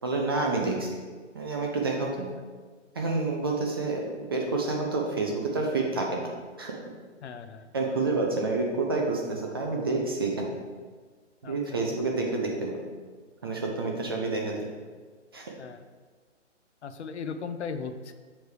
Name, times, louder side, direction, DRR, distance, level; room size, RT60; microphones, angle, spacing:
voice 1, 0.0-1.0 1.3-2.3 2.9-6.2 6.6-6.7 7.7-10.5 11.4-12.8 13.4-14.7 15.3-15.5, right 3 dB, 20° right, 0 dB, 0.4 m, -28 dB
voice 2, 7.2-7.7 11.4-11.5 15.6-15.8 16.8-18.1, left 5 dB, 65° left, 9 dB, 0.6 m, -37 dB
6.9 x 3.3 x 4.8 m, 1.5 s
hypercardioid pair, 135°, 37 cm